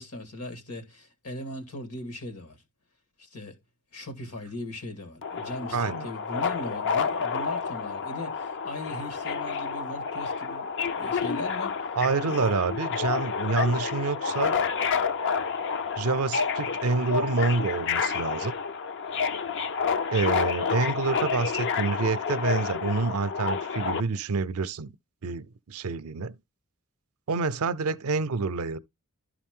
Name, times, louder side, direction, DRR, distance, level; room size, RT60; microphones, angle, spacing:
voice 1, 0.0-2.6 3.2-3.6 3.9-10.7 10.9-11.8 12.3-12.5, left 1 dB, 80° left, 2.1 m, -39 dB
Subway metro underground, 5.2-24.0, left 5 dB, 55° left, 0.5 m, -29 dB
voice 2, 5.7-6.1 12.0-14.6 16.0-18.5 20.1-24.9 25.2-26.4 27.3-28.8, right 4 dB, 70° right, 0.5 m, -27 dB
11.5 x 4.9 x 3.7 m
head